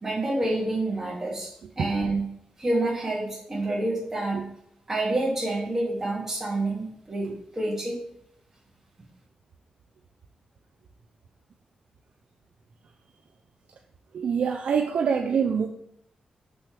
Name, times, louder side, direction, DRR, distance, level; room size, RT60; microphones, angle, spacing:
voice 1, 0.0-2.3 2.6-4.4 4.9-8.0, right 2 dB, 20° right, -5 dB, 2.3 m, -28 dB
voice 2, 14.1-15.7, right 6 dB, 65° right, 3 dB, 0.5 m, -25 dB
6.2 x 6.1 x 3.3 m, 0.71 s
wide cardioid pair, 180°, 2 cm